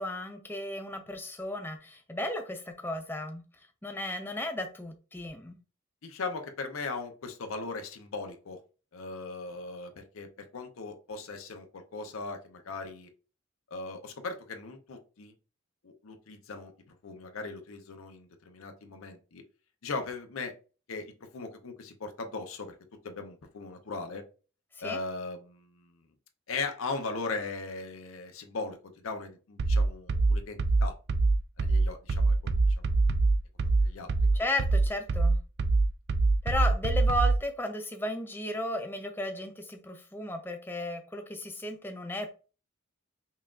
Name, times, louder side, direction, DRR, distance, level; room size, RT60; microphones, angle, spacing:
voice 1, 0.0-3.4 3.8-5.6 24.8-25.0 34.3-35.4 36.4-42.3, left 1 dB, 10° left, 5 dB, 0.5 m, -34 dB
voice 2, 6.0-8.6 8.9-10.3 10.5-13.1 13.7-15.3 15.8-19.4 19.8-20.5 20.9-22.8 23.0-24.2 24.8-25.9 26.5-28.8 29.0-30.9 31.6-32.5 33.8-34.1, left 3 dB, 85° left, 5 dB, 0.6 m, -38 dB
sound 1, 29.6-37.4, right 3 dB, 50° right, 0.3 m, -24 dB
5.5 x 2.4 x 2.4 m, 0.35 s
head